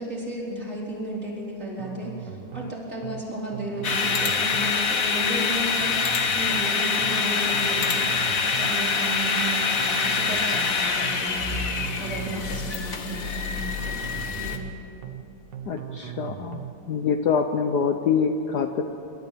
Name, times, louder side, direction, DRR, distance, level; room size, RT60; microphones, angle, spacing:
voice 1, 0.0-8.1 8.6-14.0 14.4-14.6, right 1 dB, 35° right, -5 dB, 4.8 m, -33 dB
sound 1, 1.8-2.7 3.0-3.2 3.5-4.8 5.8-6.7 7.0-7.2 7.5-8.8 9.8-10.7 11.0-11.2 11.5-12.8 13.8-14.7 15.0-15.2 15.5-16.8, right 10 dB, 60° right, 1.6 m, -38 dB
sound 2, 3.8-14.6, left 5 dB, 45° left, 1.6 m, -25 dB
voice 2, 15.7-16.6 16.9-18.8, left 6 dB, 60° left, 6 dB, 1.3 m, -25 dB
27.0 x 13.0 x 8.4 m, 2.7 s
omnidirectional pair, 2.2 m